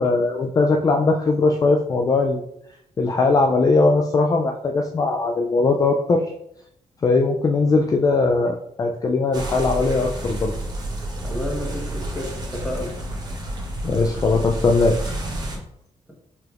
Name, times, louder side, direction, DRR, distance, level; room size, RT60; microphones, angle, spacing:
voice 1, 0.0-2.4 3.0-6.2 7.0-10.5 13.8-15.0, left 3 dB, 30° left, 3 dB, 0.3 m, -20 dB
sound 1, 9.3-15.6, right 1 dB, 35° right, 1.0 m, -30 dB
voice 2, 11.2-12.9, left 1 dB, 5° left, -2 dB, 1.1 m, -31 dB
4.6 x 3.4 x 2.5 m, 0.76 s
cardioid pair, 110°, 13 cm